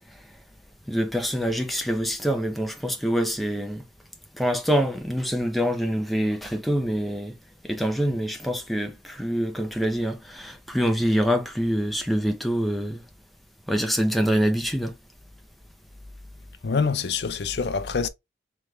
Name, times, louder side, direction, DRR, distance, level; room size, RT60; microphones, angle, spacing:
voice 1, 0.9-3.8 4.4-7.4 7.6-13.0 13.7-14.9, equal, ahead, 0.6 m, -25 dB
voice 2, 16.6-18.1, left 5 dB, 70° left, 0.5 m, -25 dB
3.3 x 3.2 x 3.1 m
head